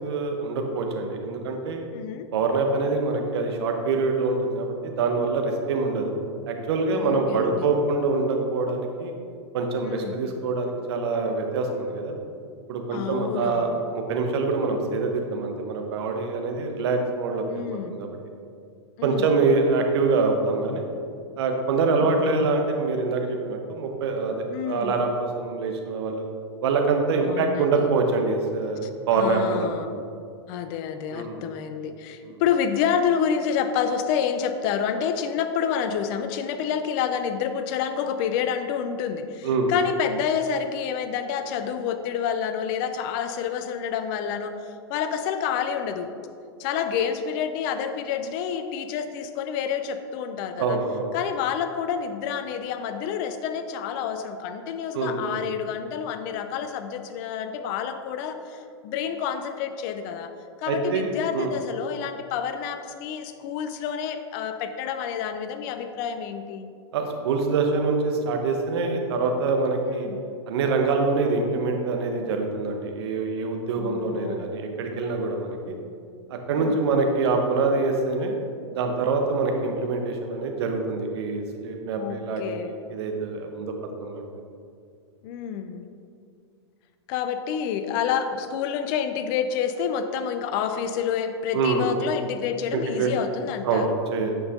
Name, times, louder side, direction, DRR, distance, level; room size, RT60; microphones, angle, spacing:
voice 1, 0.0-1.8 2.3-6.1 6.5-9.1 9.5-12.2 12.7-18.1 19.0-20.9 21.4-26.2 26.6-29.7 31.1-31.5 32.2-32.4 39.4-39.7 50.6-51.1 54.9-55.4 60.7-61.5 66.9-70.1 70.5-75.8 76.3-78.3 78.7-83.7 84.0-84.2 91.5-91.9 92.7-93.1 93.6-94.3, right 3 dB, 65° right, 3 dB, 1.2 m, -25 dB
voice 2, 1.9-2.3 6.9-7.7 9.8-10.2 12.9-13.8 17.5-18.0 19.0-19.3 22.0-22.5 24.5-24.9 27.2-27.9 28.8-28.9 29.2-29.9 30.5-46.1 46.6-50.8 51.1-60.3 60.6-66.7 69.9-70.2 73.8-74.4 76.5-76.8 82.0-82.7 85.2-85.8 87.1-93.9, left 7 dB, 45° left, 8 dB, 0.6 m, -28 dB
8.7 x 5.4 x 3.7 m, 2.3 s
hypercardioid pair, 110°, 15 cm